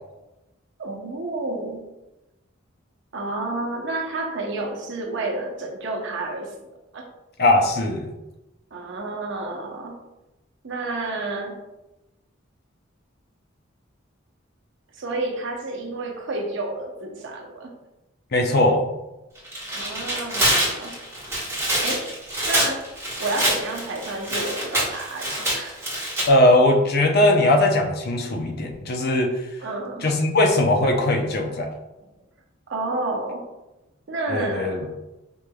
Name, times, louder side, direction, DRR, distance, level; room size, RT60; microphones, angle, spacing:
voice 1, 0.8-1.9 3.1-6.6 6.9-7.0 8.7-10.0 10.6-11.6 14.9-17.7 19.7-21.0 21.8-22.0 22.4-22.8 23.2-25.8 29.6-30.1 32.7-33.5 34.1-34.9, right 2 dB, 65° right, 1 dB, 0.7 m, -30 dB
voice 2, 7.4-8.1 18.3-18.8 26.3-29.3 30.0-31.7 34.3-34.8, left 1 dB, 50° left, 3 dB, 0.6 m, -19 dB
Tearing, 19.4-26.3, right 1 dB, 15° right, 1.3 m, -25 dB
5.2 x 3.2 x 2.3 m, 1.0 s
head